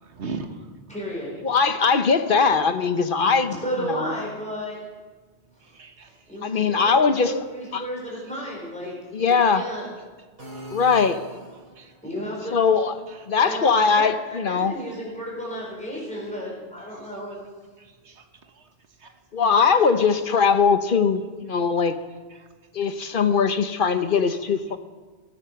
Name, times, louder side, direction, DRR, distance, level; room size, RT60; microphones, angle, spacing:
voice 1, 0.0-0.7 5.6-6.4 6.8-6.9 10.5-11.2 11.7-12.0 13.1-13.3 17.8-18.7 19.0-19.2 22.3-22.5 22.8-23.2 24.3-24.4, right 4 dB, 85° right, 6 dB, 1.5 m, -41 dB
voice 2, 0.9-1.5 3.5-4.8 5.5-5.7 6.1-9.9 12.0-12.6 13.4-13.7 14.0-17.4, equal, 5° left, -4 dB, 4.7 m, -33 dB
voice 3, 1.4-3.6 4.0-4.1 6.4-7.3 7.7-7.8 9.1-9.6 10.7-11.2 12.5-12.9 13.3-14.7 19.3-21.9 22.7-24.8, left 5 dB, 55° left, 10 dB, 1.0 m, -20 dB
sound 1, 10.4-12.0, right 2 dB, 55° right, 3.8 m, -40 dB
18.0 x 14.0 x 5.7 m, 1.4 s
omnidirectional pair, 1.1 m